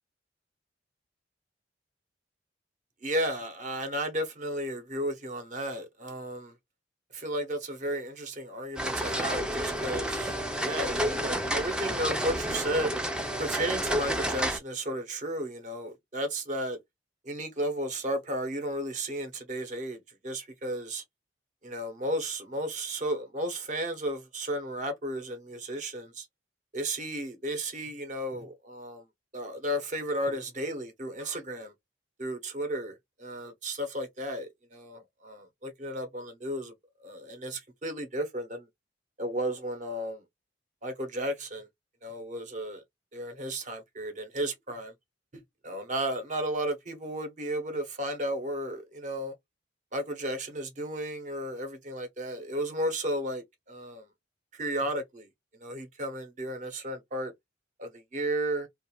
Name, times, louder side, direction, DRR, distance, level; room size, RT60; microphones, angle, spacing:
voice 1, 3.0-6.5 7.1-13.0 13.4-16.8 17.3-20.0 20.2-21.0 21.6-26.2 26.7-29.0 29.3-31.7 32.2-32.9 33.2-36.7 37.0-38.6 39.2-40.2 40.8-41.7 42.0-42.8 43.1-44.9 45.6-49.3 49.9-54.0 54.5-55.3 55.6-57.3 57.8-58.7, right 1 dB, 40° right, 0.7 m, -33 dB
sound 1, 8.8-14.6, equal, 5° right, 0.3 m, -30 dB
2.4 x 2.3 x 2.9 m
head